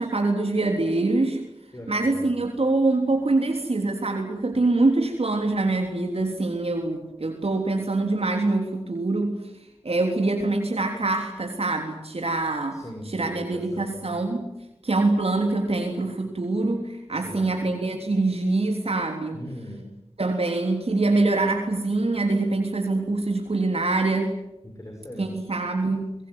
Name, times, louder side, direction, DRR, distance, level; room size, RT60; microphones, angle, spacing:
voice 1, 0.0-1.4 1.9-12.8 13.1-14.5 14.8-19.4 20.2-24.3 25.2-26.2, right 2 dB, 65° right, 3 dB, 3.5 m, -24 dB
voice 2, 1.7-2.4 12.7-14.1 17.1-17.6 19.3-19.9 24.6-25.5, equal, 30° left, 2 dB, 6.5 m, -40 dB
24.0 x 21.5 x 9.6 m, 0.89 s
wide cardioid pair, 60°, 11 cm